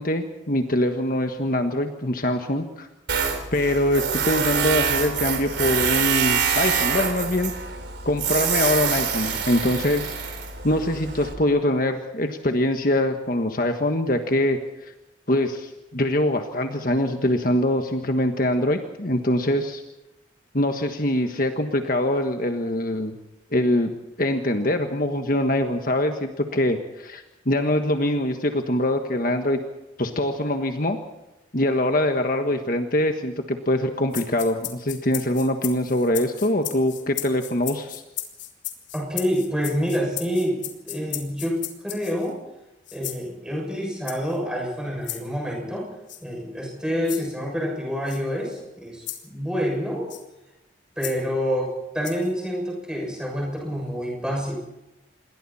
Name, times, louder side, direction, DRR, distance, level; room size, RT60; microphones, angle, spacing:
voice 1, 0.0-2.9 3.5-7.5 8.0-10.1 10.6-14.9 15.3-19.8 20.5-23.1 23.5-23.9 24.2-29.6 30.0-31.0 31.5-38.0, left 1 dB, 45° left, 5 dB, 1.5 m, -23 dB
Tools, 3.1-11.3, right 6 dB, 60° right, 3.8 m, -25 dB
sound 1, 34.1-42.3 42.9-43.2 44.0-44.4 45.0-45.2 46.1-46.2 47.0-47.3 48.1-48.2 49.1-49.3 50.1-50.3 51.0-51.2 52.0-52.3, left 13 dB, 70° left, 3.1 m, -35 dB
voice 2, 38.9-42.4 42.9-45.9 46.2-50.1 51.0-54.5, equal, 5° right, -1 dB, 6.9 m, -27 dB
27.5 x 22.0 x 4.3 m, 0.97 s
head